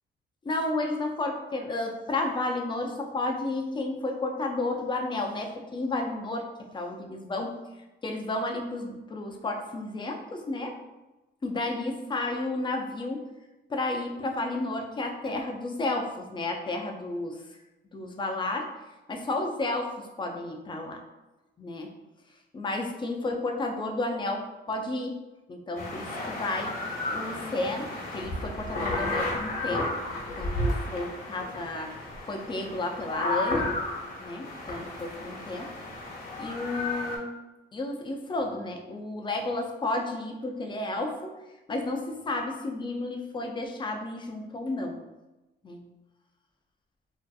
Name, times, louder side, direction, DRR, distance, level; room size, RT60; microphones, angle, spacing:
voice 1, 0.4-6.5 6.7-7.6 8.0-10.8 11.4-13.3 13.7-17.6 17.9-18.7 19.1-21.0 21.6-22.0 22.5-25.2 25.5-26.8 27.1-29.9 30.3-33.7 34.2-35.7 36.4-37.3 37.7-41.3 41.7-45.0 45.6-45.8, left 2 dB, 25° left, 3 dB, 0.4 m, -32 dB
sound 1, 25.8-37.2, left 2 dB, 45° left, 0.8 m, -33 dB
2.6 x 2.4 x 2.3 m, 1.0 s
cardioid pair, 90°, 20 cm